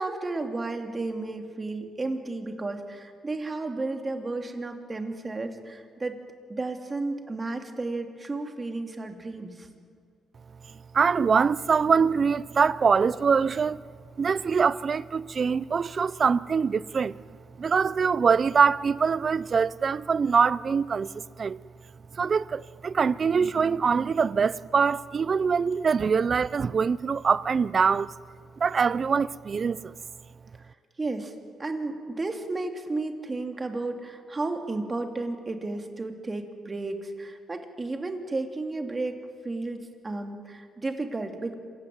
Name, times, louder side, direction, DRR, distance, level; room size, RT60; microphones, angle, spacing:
voice 1, 0.0-6.2 6.5-9.7 31.0-31.3 31.6-39.2 39.4-41.5, right 2 dB, 25° right, 2.8 m, -33 dB
voice 2, 10.9-13.8 14.2-17.2 17.6-21.6 22.1-28.1 28.6-29.9, right 5 dB, 40° right, 0.6 m, -24 dB
26.5 x 16.0 x 9.4 m
cardioid pair, 90°, 0 cm